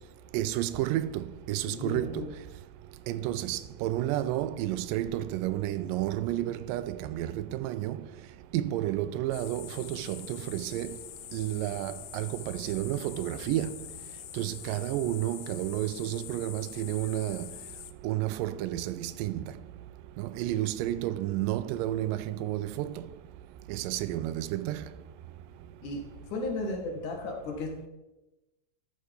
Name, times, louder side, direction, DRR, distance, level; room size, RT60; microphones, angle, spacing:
voice 1, 0.3-2.2 3.1-8.0 8.5-11.0 11.3-13.7 14.3-17.5 18.0-19.5 20.2-23.1 23.7-24.9, right 13 dB, 90° right, 2.2 m, -31 dB
voice 2, 1.7-2.3 25.8-27.9, left 2 dB, 65° left, 2.9 m, -35 dB
sound 1, 9.3-17.9, left 15 dB, 90° left, 2.3 m, -45 dB
13.0 x 6.6 x 5.2 m
omnidirectional pair, 3.9 m